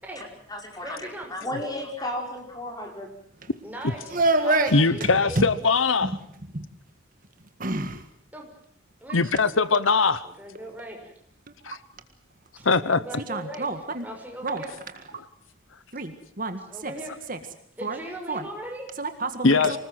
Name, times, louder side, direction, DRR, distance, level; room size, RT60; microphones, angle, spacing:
voice 1, 0.2-3.1, left 1 dB, 20° left, 2 dB, 5.3 m, -34 dB
voice 2, 0.8-1.3 3.6-5.5 8.3-8.5 9.0-9.2 10.4-11.1 12.6-13.7 14.0-14.7 16.7-17.1 17.8-18.9, right 1 dB, 10° right, 1 dB, 6.1 m, -39 dB
voice 3, 4.1-4.7 5.0-5.1 5.3-5.5 6.0-6.1 6.5-6.6 7.6-8.1 9.2-9.3 13.3-14.0 14.4-14.6 15.9-16.9 17.3-17.4 17.8-18.0 18.3-18.4 19.0-19.8, right 2 dB, 45° right, 8 dB, 1.8 m, -27 dB
voice 4, 4.7-6.1 9.1-10.3 11.6-11.8 12.6-13.0 19.4-19.8, left 4 dB, 80° left, 16 dB, 1.1 m, -21 dB
26.0 x 19.5 x 7.8 m, 0.64 s
head